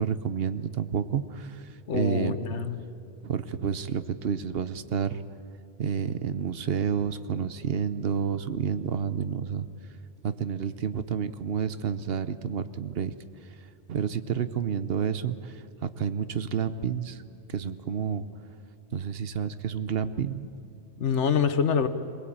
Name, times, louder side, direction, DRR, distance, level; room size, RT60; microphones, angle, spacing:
voice 1, 0.0-1.5 1.9-2.3 3.2-5.2 5.8-9.7 10.2-13.1 13.9-15.5 15.8-17.2 17.5-18.2 18.9-20.5, right 7 dB, 60° right, 13 dB, 1.0 m, -29 dB
voice 2, 1.9-2.8 21.0-21.9, left 7 dB, 75° left, 11 dB, 1.3 m, -25 dB
22.5 x 19.0 x 8.7 m, 2.5 s
omnidirectional pair, 1.2 m